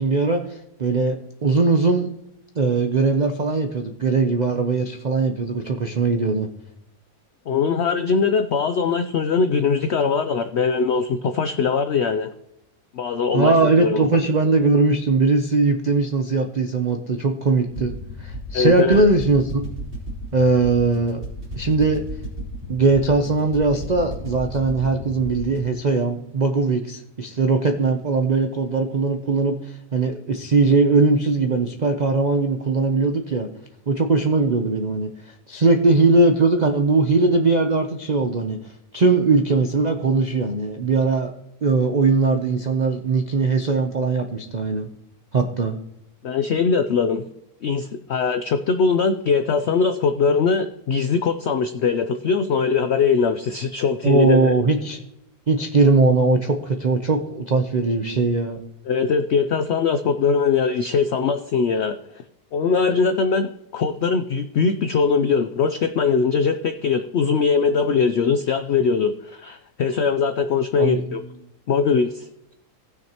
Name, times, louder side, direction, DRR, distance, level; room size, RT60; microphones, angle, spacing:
voice 1, 0.0-2.1 2.6-6.5 13.3-17.9 18.2-19.6 20.3-21.2 21.5-22.0 22.7-33.5 33.9-35.1 35.5-38.6 38.9-41.3 41.6-44.9 45.3-45.8 54.0-55.0 55.5-58.6 70.8-71.0, right 3 dB, 80° right, 6 dB, 0.3 m, -20 dB
voice 2, 7.5-12.3 12.9-14.2 18.5-19.0 46.2-47.2 47.6-54.5 58.9-62.0 62.5-71.2 71.7-72.5, left 5 dB, 85° left, 9 dB, 0.5 m, -21 dB
sound 1, 17.7-25.6, equal, 35° right, 3.3 m, -34 dB
18.5 x 6.3 x 2.9 m, 0.82 s
omnidirectional pair, 1.7 m